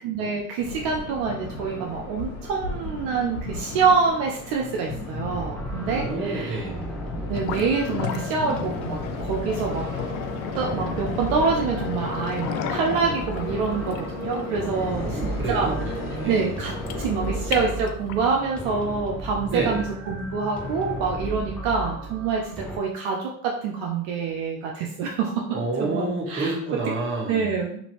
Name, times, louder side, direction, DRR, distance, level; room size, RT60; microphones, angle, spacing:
voice 1, 0.0-6.6 7.3-9.8 10.5-15.9 16.3-16.7 17.0-25.5 25.8-26.6 27.3-27.8, right 5 dB, 60° right, 0 dB, 0.6 m, -26 dB
sound 1, 0.6-17.7, left 2 dB, 30° left, 1.0 m, -35 dB
sound 2, 5.2-22.8, right 1 dB, 5° left, 0.3 m, -35 dB
voice 2, 5.8-6.9 14.9-16.6 19.5-19.8 25.5-27.5, right 2 dB, 25° right, -1 dB, 1.1 m, -29 dB
sound 3, 7.3-18.3, left 8 dB, 70° left, 0.5 m, -34 dB
2.8 x 2.5 x 2.9 m, 0.65 s
hypercardioid pair, 75°, 43 cm